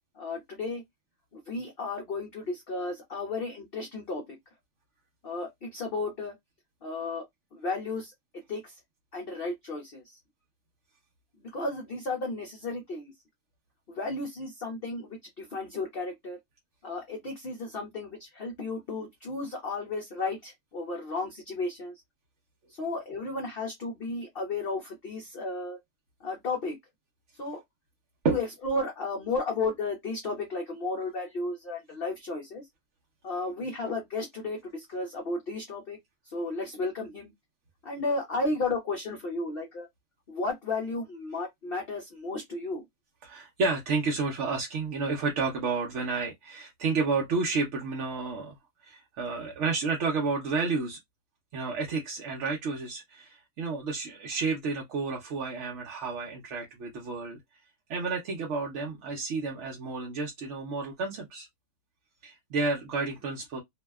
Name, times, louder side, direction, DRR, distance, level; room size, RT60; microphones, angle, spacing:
voice 1, 0.2-0.8 1.5-4.4 5.2-6.3 6.8-7.2 7.5-8.1 8.5-8.6 9.1-10.0 11.5-13.1 13.9-16.4 16.8-21.9 22.8-25.8 26.2-26.8 27.4-27.6 28.3-32.6 33.2-36.0 36.3-37.3 37.8-39.9 40.3-42.8, left 3 dB, 60° left, 0.6 m, -33 dB
voice 2, 43.2-48.6 48.8-51.0 51.5-57.4 57.9-61.5 62.2-63.6, right 4 dB, 60° right, 0.8 m, -31 dB
2.7 x 2.2 x 2.2 m
omnidirectional pair, 1.7 m